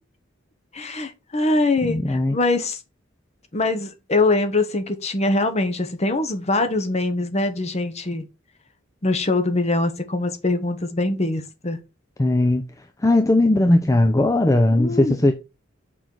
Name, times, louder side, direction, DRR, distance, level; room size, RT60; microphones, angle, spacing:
voice 1, 0.7-2.8 3.5-8.3 9.0-11.8 14.7-15.2, left 2 dB, 35° left, 1.0 m, -23 dB
voice 2, 1.8-2.4 12.2-12.6 13.0-15.3, left 1 dB, 15° left, 0.5 m, -18 dB
6.2 x 3.9 x 4.5 m
head